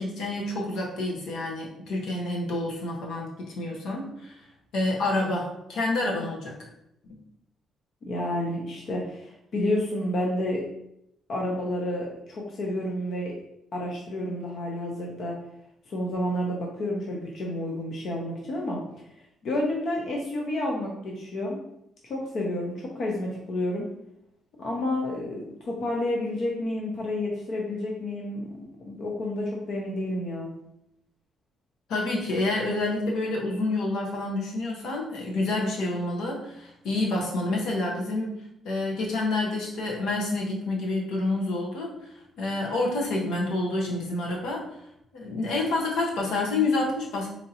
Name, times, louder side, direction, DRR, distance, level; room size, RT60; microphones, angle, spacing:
voice 1, 0.0-4.4 4.7-6.6 31.9-38.4 38.6-42.1 42.4-44.6 45.1-47.3, left 2 dB, 80° left, -1 dB, 0.9 m, -28 dB
voice 2, 8.1-10.6 11.3-13.3 13.7-15.4 15.9-18.8 19.4-21.6 22.0-23.9 24.6-30.5, left 1 dB, 60° left, -1 dB, 0.7 m, -30 dB
4.3 x 2.7 x 2.8 m, 0.78 s
cardioid pair, 90°, 0 cm